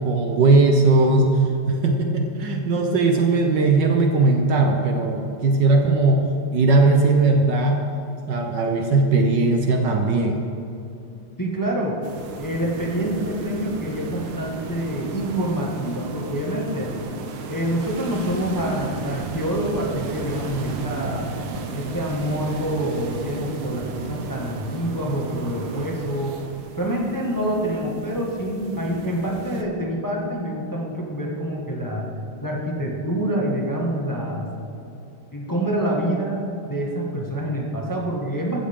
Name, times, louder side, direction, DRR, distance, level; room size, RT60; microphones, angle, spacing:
voice 1, 0.0-1.4 1.7-6.3 6.5-7.8 8.3-10.4, right 3 dB, 60° right, 3 dB, 1.4 m, -18 dB
voice 2, 11.4-12.0 12.4-17.0 17.5-21.3 21.7-26.4 26.8-32.1 32.4-34.5 35.3-36.4 36.7-38.7, right 1 dB, 10° left, -3 dB, 1.4 m, -26 dB
sound 1, 12.0-29.6, right 4 dB, 80° right, 1.9 m, -34 dB
15.5 x 12.5 x 3.7 m, 2.7 s
omnidirectional pair, 2.3 m